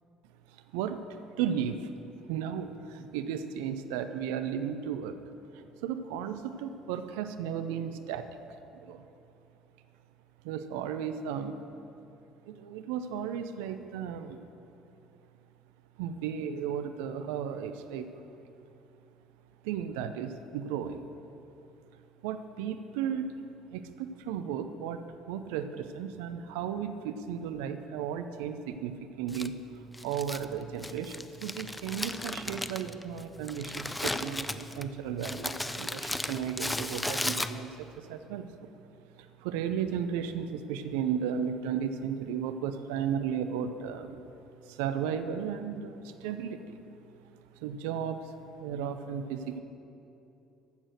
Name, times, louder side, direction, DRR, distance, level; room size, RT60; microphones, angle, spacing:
voice 1, 1.4-1.8 2.3-5.2 5.5-8.3 8.8-9.0 10.4-11.6 12.5-14.4 16.0-18.1 19.6-21.1 22.2-23.3 23.7-25.0 25.3-29.5 30.0-38.7 39.4-44.3 44.6-46.8 47.6-48.3 48.6-49.6, right 8 dB, 70° right, 9 dB, 0.6 m, -34 dB
Crumpling crinkling, 29.3-37.9, left 1 dB, 10° left, 0.5 m, -36 dB
14.0 x 6.3 x 6.5 m, 2.8 s
figure-of-eight pair, 55°, 0 cm